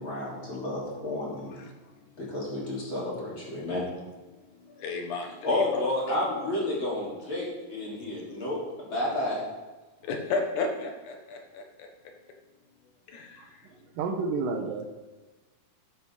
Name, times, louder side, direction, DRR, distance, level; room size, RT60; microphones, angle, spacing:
voice 1, 0.0-1.6 2.2-3.9 5.4-9.5, left 1 dB, 35° left, -6 dB, 3.8 m, -31 dB
voice 2, 1.5-2.0 3.6-3.9 4.5-5.6 8.2-8.4 10.0-11.9 13.1-13.7, left 3 dB, 65° left, 3 dB, 2.7 m, -35 dB
voice 3, 14.0-14.8, right 4 dB, 85° right, 5 dB, 2.7 m, -30 dB
13.5 x 10.0 x 3.7 m, 1.2 s
omnidirectional pair, 4.0 m